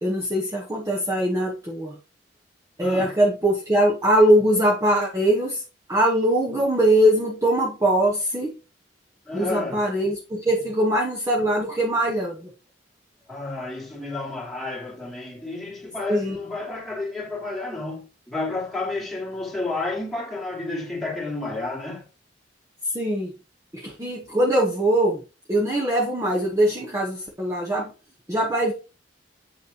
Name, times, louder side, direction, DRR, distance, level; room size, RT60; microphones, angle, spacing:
voice 1, 0.0-2.0 2.8-5.6 5.9-8.5 9.3-12.5 16.1-16.4 22.8-23.3 23.7-25.2 25.5-27.9 28.3-28.7, right 1 dB, 15° right, 1.2 m, -22 dB
voice 2, 2.8-3.1 9.3-9.9 13.3-22.0, left 2 dB, ahead, 2.8 m, -31 dB
8.1 x 6.3 x 3.0 m
head